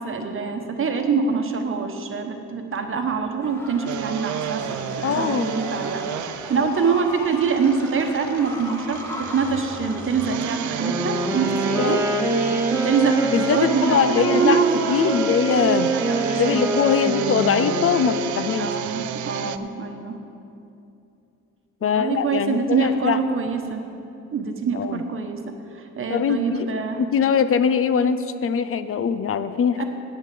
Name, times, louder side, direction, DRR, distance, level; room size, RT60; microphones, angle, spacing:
voice 1, 0.0-12.1 12.7-15.2 15.9-16.5 18.6-20.2 21.8-23.8 24.3-25.4 25.7-27.0 29.8-29.9, right 5 dB, 45° right, 5 dB, 1.1 m, -25 dB
sound 1, 3.4-11.8, left 1 dB, 10° left, 1.7 m, -38 dB
sound 2, 3.9-19.6, right 10 dB, 70° right, 0.5 m, -31 dB
voice 2, 5.0-5.6 11.8-12.0 13.3-14.6 14.9-15.9 16.4-18.7 21.8-23.2 24.7-25.0 26.1-29.8, left 7 dB, 45° left, 11 dB, 0.5 m, -22 dB
Wind instrument woodwind instrument, 10.7-18.8, right 2 dB, 10° right, 1.5 m, -25 dB
8.6 x 8.0 x 7.7 m, 2.7 s
cardioid pair, 90°, 30 cm